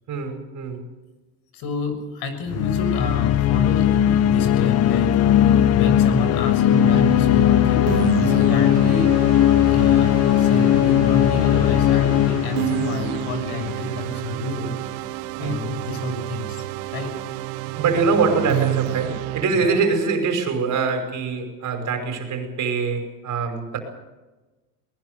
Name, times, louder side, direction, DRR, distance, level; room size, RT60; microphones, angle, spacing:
voice 1, 0.1-0.8 15.4-15.7 17.8-23.8, right 4 dB, 40° right, 6 dB, 5.6 m, -23 dB
voice 2, 1.5-5.1 5.7-7.8 8.2-9.1 9.7-14.8 15.4-16.6 16.9-17.1, left 3 dB, 55° left, 9 dB, 6.9 m, -29 dB
sound 1, 2.5-14.0, left 11 dB, 35° left, 0.8 m, -18 dB
sound 2, 6.7-19.4, right 18 dB, 60° right, 1.0 m, -29 dB
23.0 x 20.5 x 6.8 m, 1.2 s
supercardioid pair, 110°, 46 cm